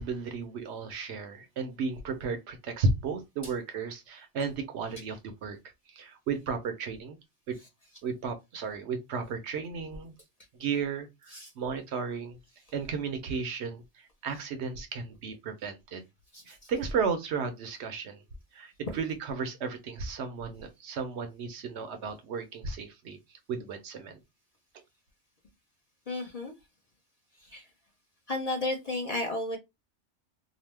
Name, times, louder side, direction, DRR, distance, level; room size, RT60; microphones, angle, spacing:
voice 1, 0.0-5.6 5.9-7.2 7.5-7.6 8.0-10.1 10.5-12.4 12.7-16.0 16.5-18.2 18.5-24.2, right 5 dB, 70° right, 0.8 m, -34 dB
voice 2, 26.1-26.5 27.4-27.7 28.3-29.6, left 2 dB, 40° left, 0.6 m, -33 dB
2.8 x 2.0 x 3.2 m
omnidirectional pair, 1.3 m